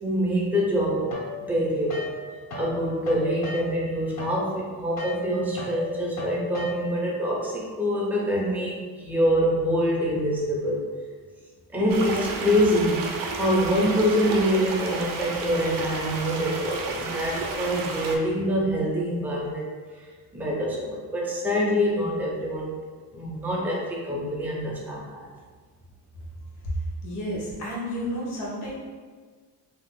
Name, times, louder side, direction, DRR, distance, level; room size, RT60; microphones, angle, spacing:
voice 1, 0.0-2.1 2.5-10.9 11.7-13.1 13.4-19.7 20.3-22.7 23.1-25.3, equal, 5° right, -4 dB, 0.4 m, -25 dB
sound 1, 1.1-2.8 3.0-7.1, left 2 dB, 45° left, 0.6 m, -37 dB
sound 2, 11.9-18.2, right 4 dB, 60° right, 0.5 m, -32 dB
voice 2, 27.0-28.7, equal, 70° left, -6 dB, 1.0 m, -31 dB
2.7 x 2.1 x 3.6 m, 1.5 s
cardioid pair, 160°, 40 cm